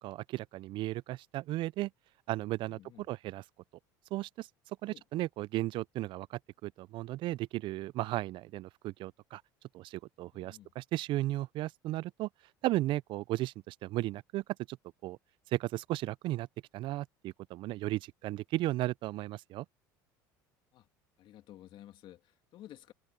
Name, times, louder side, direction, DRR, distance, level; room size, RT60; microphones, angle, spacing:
voice 1, 0.0-1.9 2.3-3.4 4.1-4.5 4.8-9.4 9.7-12.3 12.6-14.8 15.0-15.2 15.5-16.5 16.7-19.7, right 16 dB, 55° right, 0.4 m, -35 dB
voice 2, 2.7-3.0 4.8-5.0 10.3-10.7 20.7-20.9 21.2-22.9, left 13 dB, 55° left, 2.5 m, -53 dB
supercardioid pair, 85°, 10 cm